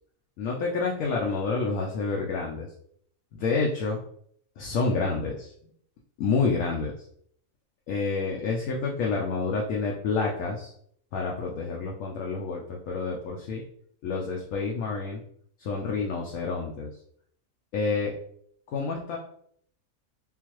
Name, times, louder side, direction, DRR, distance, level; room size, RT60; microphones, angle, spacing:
voice 1, 0.4-2.7 3.3-4.0 4.6-5.7 6.2-7.0 7.9-10.7 11.1-13.6 14.0-15.2 15.6-16.9 17.7-18.1 18.7-19.2, left 4 dB, 70° left, -1 dB, 0.9 m, -28 dB
3.8 x 2.4 x 3.0 m, 0.66 s
omnidirectional pair, 1.5 m